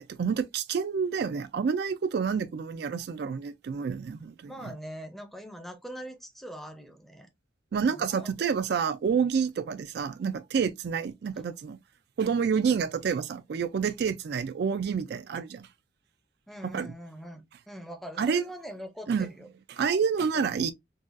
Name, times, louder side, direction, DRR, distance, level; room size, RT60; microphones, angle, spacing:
voice 1, 0.0-4.5 7.7-11.8 12.2-15.7 16.7-16.9 18.2-18.4 19.1-19.3 19.7-20.7, right 6 dB, 60° right, 0.3 m, -28 dB
voice 2, 4.5-7.3 7.9-8.3 15.0-15.1 16.5-19.5 20.3-20.7, equal, ahead, 0.6 m, -43 dB
3.9 x 2.3 x 2.5 m
head